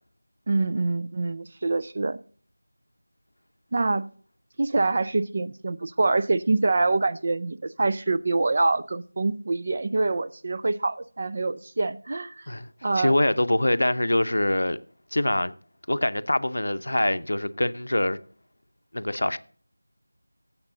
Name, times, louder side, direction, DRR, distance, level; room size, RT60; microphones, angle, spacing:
voice 1, 0.5-2.2 3.7-4.1 4.6-12.5 12.8-13.1, right 3 dB, 35° right, 0.5 m, -25 dB
voice 2, 12.9-14.8 15.1-15.5 15.9-18.2 18.9-19.4, left 1 dB, 65° left, 0.7 m, -24 dB
15.5 x 7.4 x 3.8 m
figure-of-eight pair, 170°, 0 cm